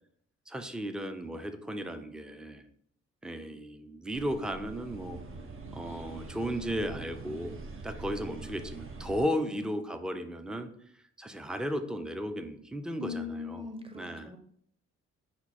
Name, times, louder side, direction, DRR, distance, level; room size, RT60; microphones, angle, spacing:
voice 1, 0.5-2.6 3.2-5.2 5.7-7.6 7.8-10.7 11.2-13.7 13.9-14.3, equal, ahead, 8 dB, 0.5 m, -35 dB
sound 1, 4.1-9.2, right 3 dB, 45° right, 0.8 m, -44 dB
voice 2, 12.9-14.4, left 5 dB, 20° right, 6 dB, 0.9 m, -40 dB
5.8 x 2.2 x 4.1 m, 0.66 s
supercardioid pair, 60°, 30 cm